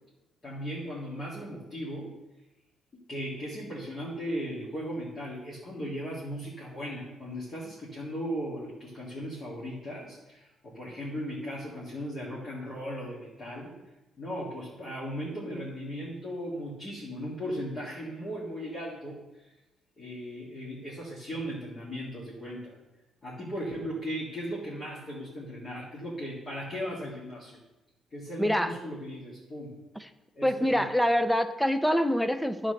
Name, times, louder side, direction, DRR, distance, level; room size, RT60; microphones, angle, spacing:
voice 1, 0.4-2.1 3.1-13.7 14.2-19.2 20.0-22.7 23.2-27.6 28.1-29.8 30.3-30.8, equal, 30° left, -6 dB, 1.9 m, -37 dB
voice 2, 28.4-28.8 30.0-30.1 30.4-32.7, equal, ahead, 10 dB, 0.4 m, -25 dB
12.0 x 4.2 x 6.5 m, 1.0 s
cardioid pair, 180°, 0 cm